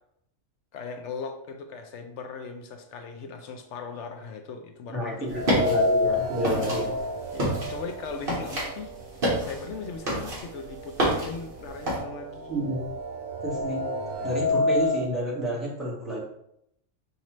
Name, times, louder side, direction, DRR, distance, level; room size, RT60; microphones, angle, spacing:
voice 1, 0.7-5.6 6.5-6.8 7.3-8.9 9.4-12.6, left 5 dB, 70° left, 5 dB, 0.9 m, -39 dB
voice 2, 4.9-6.9 12.5-12.8 13.4-13.8 14.2-16.2, right 1 dB, ahead, -6 dB, 1.4 m, -30 dB
sound 1, 5.3-12.0, equal, 45° right, 1.7 m, -29 dB
sound 2, 5.3-9.4 9.7-9.8 10.8-10.9 11.3-15.1, left 2 dB, 85° right, 1.0 m, -29 dB
5.7 x 2.7 x 3.0 m, 0.76 s
omnidirectional pair, 1.3 m